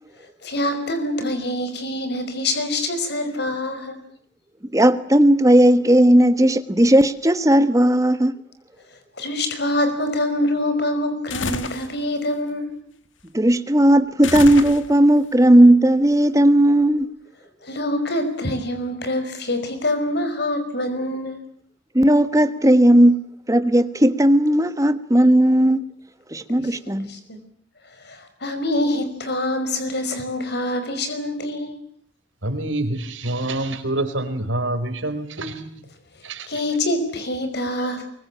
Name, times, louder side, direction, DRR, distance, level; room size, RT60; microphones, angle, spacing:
voice 1, 0.4-4.0 9.2-12.7 17.6-21.4 26.6-26.8 27.0-27.4 28.0-31.7 36.5-38.1, left 1 dB, 60° left, 5.3 m, -25 dB
voice 2, 4.7-8.3 13.3-17.1 21.9-23.2 23.5-25.8 26.3-27.1, right 1 dB, 15° right, 1.3 m, -15 dB
sound 1, 11.3-11.9 14.2-15.2, left 4 dB, 85° left, 2.0 m, -29 dB
voice 3, 32.4-35.9 36.2-36.5 37.8-37.9, right 1 dB, 90° right, 4.7 m, -27 dB
24.5 x 23.5 x 8.8 m
head